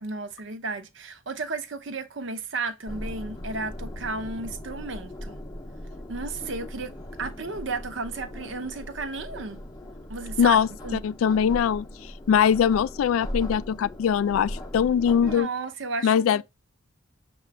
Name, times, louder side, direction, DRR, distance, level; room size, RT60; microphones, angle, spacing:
voice 1, 0.0-5.4 6.1-9.6 10.1-10.6 10.8-11.0 15.2-16.4, right 3 dB, 60° right, 0.7 m, -33 dB
sound 1, 2.9-15.4, left 1 dB, 20° left, 0.6 m, -39 dB
voice 2, 10.4-10.7 11.0-11.9 12.3-15.5 16.0-16.4, left 8 dB, 85° left, 0.3 m, -21 dB
6.7 x 2.3 x 3.4 m
head